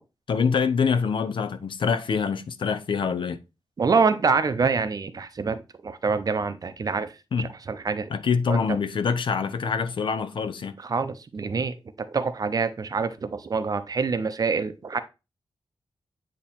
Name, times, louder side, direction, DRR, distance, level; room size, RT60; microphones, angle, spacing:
voice 1, 0.3-3.4 7.3-7.5 8.1-10.8, left 6 dB, 65° left, 0.6 m, -25 dB
voice 2, 3.8-8.1 8.5-8.8 10.8-15.0, right 4 dB, 40° right, 0.6 m, -26 dB
8.7 x 3.0 x 4.1 m
wide cardioid pair, 150°, 9 cm